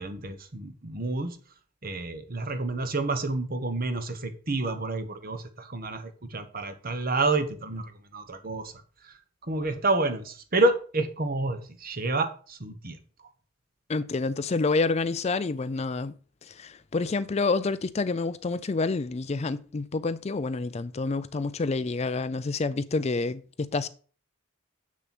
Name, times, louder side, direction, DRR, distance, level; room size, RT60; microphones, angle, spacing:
voice 1, 0.0-1.4 1.8-8.7 9.0-9.2 9.5-13.0, right 2 dB, 45° right, 1.2 m, -29 dB
voice 2, 13.9-16.1 16.4-23.9, left 3 dB, 30° left, 0.4 m, -28 dB
7.5 x 6.6 x 6.1 m
head